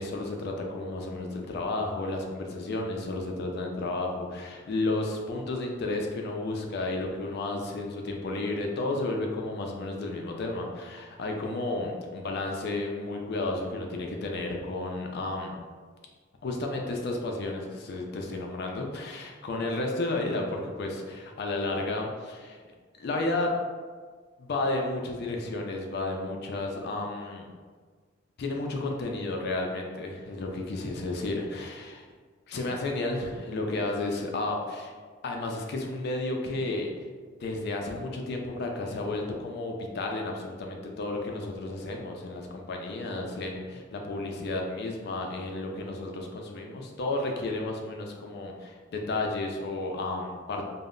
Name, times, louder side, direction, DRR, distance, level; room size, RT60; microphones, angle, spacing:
voice 1, 0.0-15.6 16.4-22.6 22.9-23.5 24.4-27.5 28.4-32.1 32.5-34.9 35.2-36.9 37.4-50.6, left 2 dB, 55° left, 1 dB, 0.4 m, -32 dB
2.0 x 2.0 x 3.6 m, 1.5 s
head